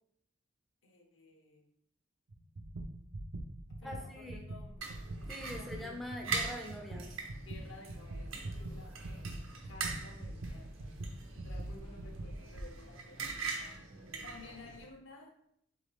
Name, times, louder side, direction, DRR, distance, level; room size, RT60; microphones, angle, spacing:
voice 1, 0.8-1.6 3.8-5.0 5.5-6.0 7.4-13.8 14.2-15.3, left 3 dB, 70° left, 2 dB, 0.9 m, -55 dB
sound 1, 2.3-12.4, right 1 dB, 50° right, 0.5 m, -43 dB
voice 2, 3.8-4.4 5.3-7.1, left 1 dB, ahead, 0 dB, 0.5 m, -43 dB
sound 2, 4.8-14.8, right 4 dB, 85° right, 0.8 m, -42 dB
3.8 x 3.7 x 3.5 m, 0.72 s
head